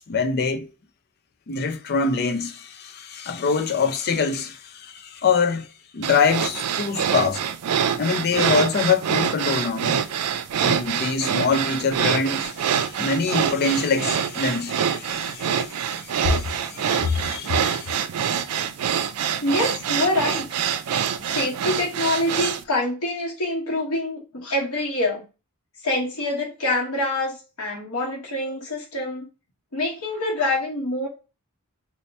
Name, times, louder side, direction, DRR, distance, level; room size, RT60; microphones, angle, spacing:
voice 1, 0.1-0.7 1.5-5.7 5.9-7.4 8.0-10.0 10.6-18.0, left 4 dB, 45° left, 0.4 m, -24 dB
sound 1, 6.0-22.6, right 8 dB, 90° right, 0.4 m, -25 dB
voice 2, 19.4-20.5 21.3-25.2 25.8-29.3 29.7-31.1, left 1 dB, 75° left, 1.1 m, -25 dB
2.8 x 2.1 x 4.1 m
head